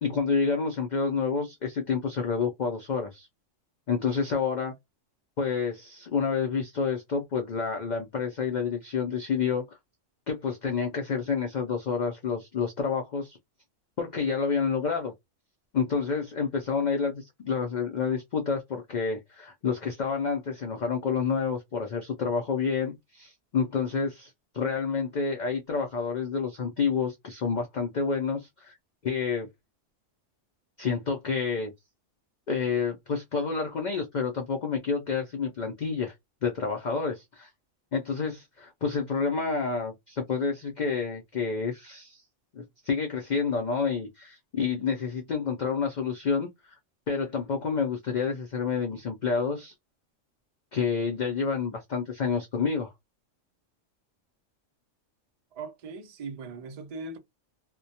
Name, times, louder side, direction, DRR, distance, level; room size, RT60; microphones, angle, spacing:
voice 1, 0.0-3.3 3.9-4.7 5.4-9.8 10.3-13.4 14.0-15.1 15.7-28.7 29.0-29.5 30.8-31.7 32.5-36.2 36.4-37.5 37.9-42.2 42.5-46.8 47.1-49.7 50.7-52.9, left 5 dB, 60° left, 0.4 m, -29 dB
voice 2, 55.5-57.2, right 3 dB, 70° right, 0.3 m, -39 dB
2.2 x 2.1 x 2.6 m
omnidirectional pair, 1.3 m